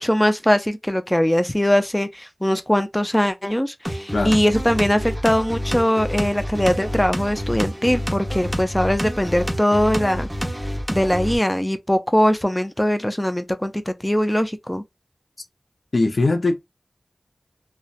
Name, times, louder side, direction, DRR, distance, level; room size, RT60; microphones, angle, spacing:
voice 1, 0.0-10.3 10.5-14.8, equal, 15° left, 0.4 m, -21 dB
sound 1, 3.8-11.4, equal, 15° right, 0.8 m, -28 dB
voice 2, 15.9-16.6, left 2 dB, 80° left, 0.4 m, -20 dB
2.7 x 2.1 x 2.4 m
wide cardioid pair, 55°, 0 cm